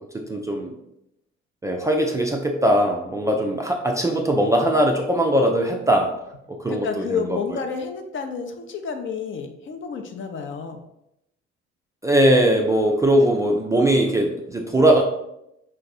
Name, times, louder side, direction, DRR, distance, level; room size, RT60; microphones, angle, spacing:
voice 1, 0.1-0.7 1.6-6.1 6.5-7.6 12.0-15.0, right 1 dB, 10° right, 1 dB, 0.4 m, -20 dB
voice 2, 6.7-10.8, left 6 dB, 35° left, 5 dB, 0.6 m, -30 dB
4.1 x 2.5 x 4.1 m, 0.82 s
figure-of-eight pair, 50°, 34 cm